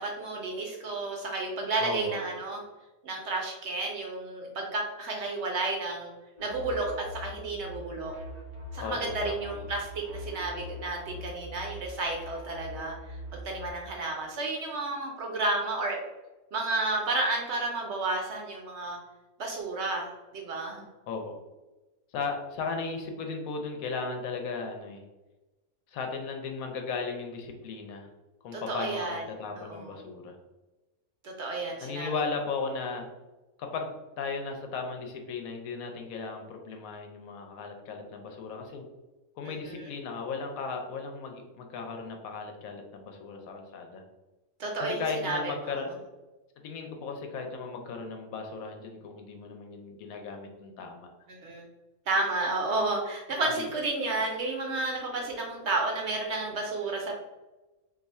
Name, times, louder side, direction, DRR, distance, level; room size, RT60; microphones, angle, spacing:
voice 1, 0.0-2.6 3.0-6.1 6.4-8.1 8.7-16.0 16.5-19.0 19.4-20.8 28.5-29.2 29.6-30.0 31.2-32.1 39.4-39.9 44.6-45.8 51.3-51.6 52.1-57.1, right 2 dB, 65° right, 0 dB, 0.8 m, -32 dB
voice 2, 1.8-2.2 8.8-9.6 21.1-21.4 22.1-25.0 25.9-28.1 28.4-30.3 31.8-33.1 33.6-38.8 39.4-44.0 44.8-46.0 46.6-51.1 53.5-53.6, left 4 dB, 80° left, 4 dB, 1.0 m, -36 dB
sound 1, 6.4-13.7, left 2 dB, 40° right, 0.4 m, -43 dB
2.6 x 2.4 x 4.1 m, 1.1 s
omnidirectional pair, 1.5 m